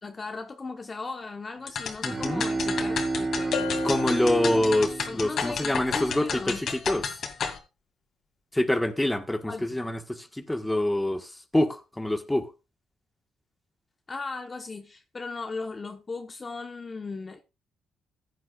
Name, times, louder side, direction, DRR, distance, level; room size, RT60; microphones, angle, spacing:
voice 1, 0.0-4.1 5.1-6.6 9.5-9.7 14.1-17.4, left 3 dB, 30° left, 1.1 m, -37 dB
sound 1, 1.7-7.6, left 6 dB, 60° left, 2.2 m, -32 dB
Bowed string instrument, 1.8-6.6, right 3 dB, 45° right, 2.9 m, -31 dB
voice 2, 2.0-2.4 3.8-7.2 8.5-12.5, left 1 dB, 10° left, 1.4 m, -26 dB
Bell, 3.5-5.1, left 9 dB, 85° left, 2.8 m, -35 dB
15.0 x 9.4 x 2.4 m
cardioid pair, 90°, 0 cm